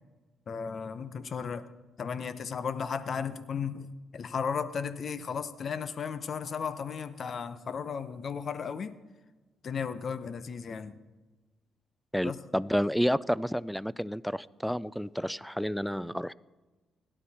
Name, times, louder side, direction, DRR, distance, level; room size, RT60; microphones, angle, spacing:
voice 1, 0.5-1.7 2.0-3.9 4.1-9.0 9.6-11.0 12.2-12.4, left 6 dB, 50° left, 13 dB, 0.9 m, -35 dB
voice 2, 12.1-16.3, equal, ahead, 20 dB, 0.4 m, -30 dB
17.5 x 11.5 x 4.3 m, 1.2 s
cardioid pair, 90°, 0 cm